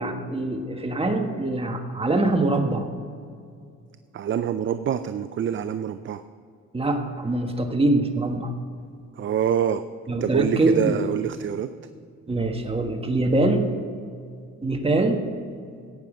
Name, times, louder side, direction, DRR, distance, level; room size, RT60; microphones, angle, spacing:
voice 1, 0.0-2.9 6.7-8.5 10.1-11.0 12.3-13.7 14.6-15.2, right 2 dB, 20° right, 4 dB, 1.5 m, -23 dB
voice 2, 4.1-6.2 9.2-9.8 10.2-11.7, right 9 dB, 40° right, 11 dB, 0.5 m, -25 dB
14.5 x 9.2 x 4.9 m, 2.3 s
cardioid pair, 90°, 30 cm